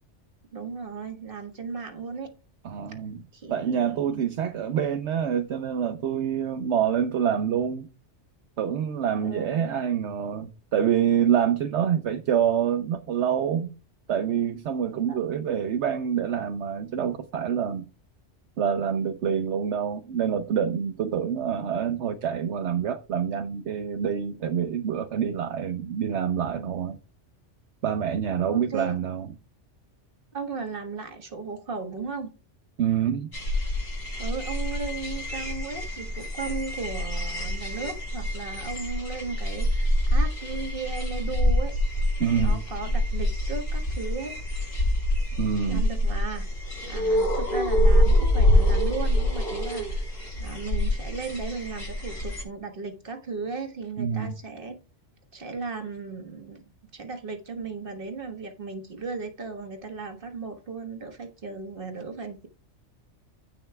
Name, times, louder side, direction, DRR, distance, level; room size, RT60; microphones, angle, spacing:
voice 1, 0.5-2.3 3.3-4.2 9.2-9.8 15.1-15.2 28.5-29.0 30.3-32.3 34.2-44.3 45.7-54.8 55.3-62.5, right 4 dB, 50° right, 1.7 m, -36 dB
voice 2, 2.6-3.2 3.5-7.9 8.6-13.7 14.1-17.9 18.6-27.0 27.8-29.3 32.8-33.3 42.2-42.6 45.4-45.9 54.0-54.3, right 8 dB, 70° right, 1.0 m, -26 dB
sound 1, 33.3-52.4, left 1 dB, 55° left, 4.4 m, -26 dB
16.0 x 5.6 x 2.3 m
omnidirectional pair, 1.2 m